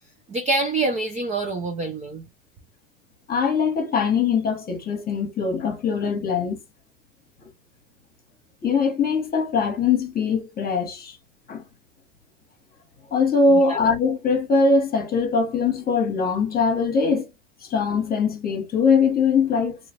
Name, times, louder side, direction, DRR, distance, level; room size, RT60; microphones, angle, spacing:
voice 1, 0.3-2.3 13.7-13.8, right 3 dB, 20° right, 0.4 m, -25 dB
voice 2, 3.3-6.6 8.6-11.2 11.5-11.6 13.1-17.3 17.6-19.8, left 4 dB, 20° left, 1.2 m, -22 dB
2.9 x 2.3 x 2.9 m
supercardioid pair, 125°, 42 cm